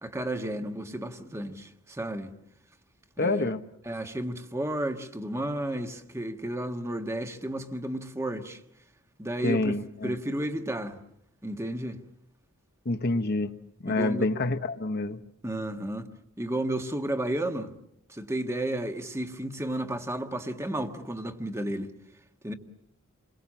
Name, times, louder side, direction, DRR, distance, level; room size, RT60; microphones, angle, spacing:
voice 1, 0.0-2.3 3.2-3.5 3.8-8.6 9.2-9.8 10.0-11.0 11.4-12.0 13.9-14.3 15.4-16.1 16.4-17.7 18.1-21.9 22.4-22.5, right 1 dB, 15° right, 1.5 m, -32 dB
voice 2, 3.2-3.6 9.4-10.1 12.8-13.5 13.8-15.2, left 2 dB, 45° left, 1.1 m, -27 dB
29.0 x 22.5 x 7.5 m
head